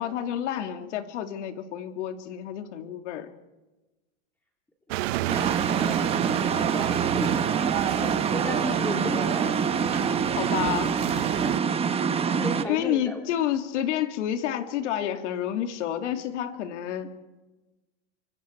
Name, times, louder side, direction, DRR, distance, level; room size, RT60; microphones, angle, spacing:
voice 1, 0.0-3.3 10.4-10.9 12.7-17.1, left 10 dB, 80° left, 6 dB, 2.6 m, -29 dB
sound 1, 4.9-11.6, right 18 dB, 60° right, 0.9 m, -30 dB
voice 2, 5.2-7.3 7.7-9.5 12.3-13.2, left 1 dB, 5° left, 2 dB, 2.8 m, -35 dB
sound 2, 5.3-12.6, right 6 dB, 15° right, 1.2 m, -26 dB
28.0 x 25.0 x 4.6 m, 1.1 s
supercardioid pair, 135°, 35 cm